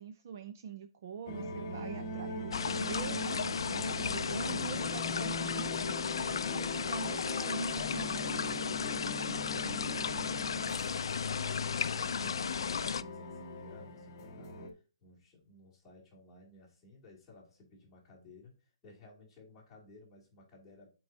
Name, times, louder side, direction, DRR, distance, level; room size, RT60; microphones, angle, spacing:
voice 1, 0.0-8.2, right 6 dB, 35° right, 9 dB, 0.4 m, -44 dB
sound 1, 1.3-14.7, left 1 dB, 25° left, 1.0 m, -41 dB
sound 2, 2.5-13.0, left 6 dB, 75° left, 0.4 m, -34 dB
voice 2, 8.5-21.0, left 2 dB, 5° left, -7 dB, 2.4 m, -58 dB
11.5 x 4.6 x 2.6 m, 0.33 s
hypercardioid pair, 180°, 3 cm